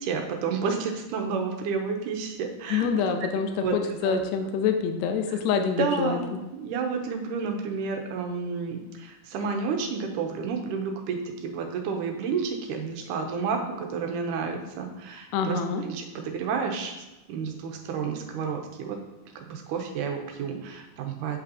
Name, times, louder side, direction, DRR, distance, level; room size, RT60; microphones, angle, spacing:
voice 1, 0.0-2.9 3.6-3.8 4.0-4.2 5.3-5.4 5.8-16.9 17.3-19.0 19.3-21.4, right 5 dB, 80° right, 3 dB, 2.2 m, -30 dB
voice 2, 2.7-6.2 15.3-15.8, left 6 dB, 80° left, 6 dB, 1.6 m, -26 dB
8.4 x 5.2 x 2.8 m, 1.0 s
omnidirectional pair, 3.8 m